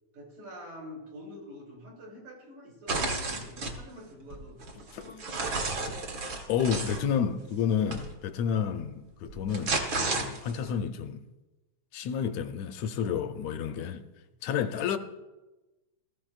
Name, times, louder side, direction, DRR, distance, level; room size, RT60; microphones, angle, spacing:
voice 1, 0.1-6.3 13.7-13.8 14.2-14.3, equal, 75° right, 4.5 m, -47 dB
sound 1, 2.9-3.8 4.3-7.0 7.9-8.1 9.3-10.7, right 3 dB, 45° right, 1.8 m, -32 dB
voice 2, 6.5-11.2 11.9-14.0 14.4-15.0, left 7 dB, 75° left, 1.7 m, -30 dB
19.0 x 14.0 x 2.4 m
omnidirectional pair, 3.4 m